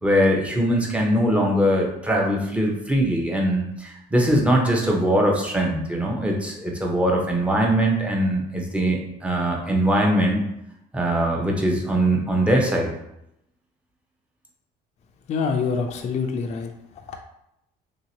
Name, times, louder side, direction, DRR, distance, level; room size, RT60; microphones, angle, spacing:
voice 1, 0.0-10.4 10.9-12.9, right 1 dB, 5° right, -1 dB, 0.7 m, -21 dB
voice 2, 15.3-17.2, left 5 dB, 40° left, 4 dB, 0.4 m, -26 dB
3.2 x 2.8 x 2.8 m, 0.81 s
cardioid pair, 110°, 17 cm